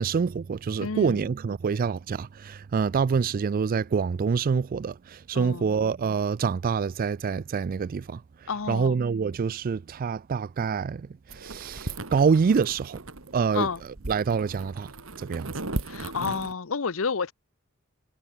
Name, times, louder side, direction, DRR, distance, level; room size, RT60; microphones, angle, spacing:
voice 1, 0.0-8.2 8.7-11.1 11.4-13.0 13.3-13.7 14.1-14.9 15.2-15.5, right 5 dB, 45° right, 0.3 m, -26 dB
voice 2, 0.8-1.3 5.3-5.7 8.5-9.0 13.5-13.8 15.9-17.3, left 5 dB, 80° left, 0.8 m, -30 dB
sound 1, 11.3-16.5, right 2 dB, 85° right, 2.6 m, -37 dB
head